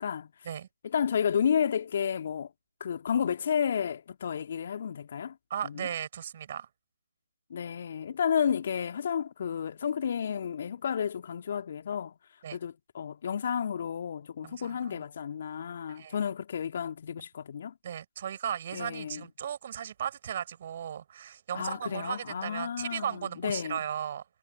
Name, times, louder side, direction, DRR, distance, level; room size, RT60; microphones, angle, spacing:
voice 1, 0.0-0.3 0.8-2.5 2.8-5.4 5.6-5.8 7.5-12.1 12.5-17.7 18.7-19.2 21.5-23.8, left 8 dB, 40° left, 2.2 m, -31 dB
voice 2, 5.5-6.7 12.4-12.6 14.4-15.0 15.9-16.1 17.8-24.2, right 9 dB, 35° right, 6.8 m, -36 dB
figure-of-eight pair, 150°, 0 cm